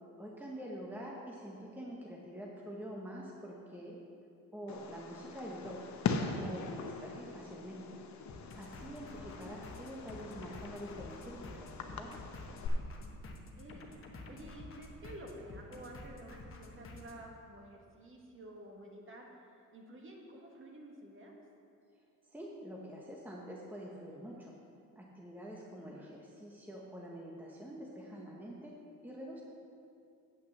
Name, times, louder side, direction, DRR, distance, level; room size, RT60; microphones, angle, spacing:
voice 1, 0.2-4.0 4.5-5.8 6.4-8.0 8.6-12.1 22.3-24.5 25.0-28.7 29.0-29.4, equal, 5° right, -3 dB, 1.0 m, -46 dB
Fireworks, 4.7-12.7, left 5 dB, 55° left, 0.9 m, -41 dB
sound 1, 8.3-17.2, left 2 dB, 40° left, 1.2 m, -50 dB
voice 2, 13.6-19.3 19.5-21.3 25.7-26.2, right 1 dB, 35° right, 0 dB, 1.7 m, -51 dB
8.6 x 5.8 x 7.2 m, 2.5 s
cardioid pair, 120°, 34 cm